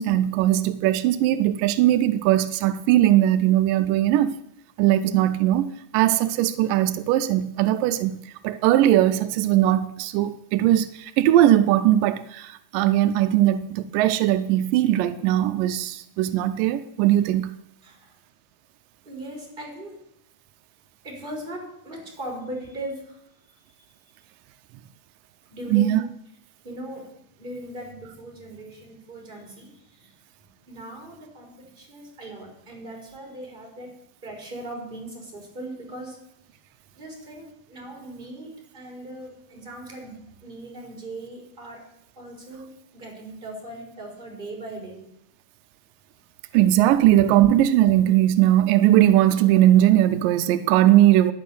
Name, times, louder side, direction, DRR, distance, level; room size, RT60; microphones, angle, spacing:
voice 1, 0.0-4.4 4.8-8.2 8.4-17.5 25.7-26.0 46.5-51.3, right 13 dB, 85° right, 2.2 m, -19 dB
voice 2, 17.8-18.1 19.0-20.0 21.0-23.2 23.5-23.6 25.5-26.0 26.6-30.1 30.7-33.9 34.2-36.2 36.9-41.8 42.2-45.0, right 1 dB, 15° right, 3.9 m, -39 dB
11.0 x 9.0 x 6.7 m
omnidirectional pair, 3.8 m